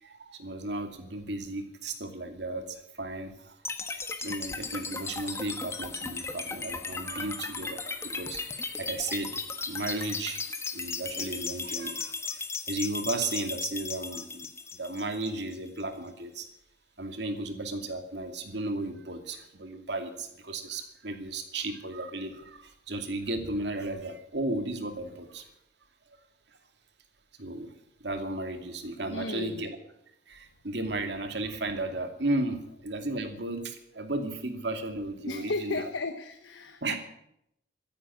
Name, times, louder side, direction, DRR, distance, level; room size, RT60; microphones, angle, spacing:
voice 1, 0.0-3.6 3.9-8.4 8.8-10.4 10.7-16.5 17.0-25.5 27.4-27.7 28.0-29.8 30.3-35.9 36.8-37.0, right 2 dB, 65° right, 6 dB, 2.5 m, -34 dB
sound 1, 3.6-15.7, left 4 dB, 15° left, 1.2 m, -36 dB
voice 2, 29.1-29.7 35.3-36.9, left 3 dB, 85° left, 8 dB, 1.1 m, -34 dB
14.0 x 10.5 x 9.7 m, 0.77 s
head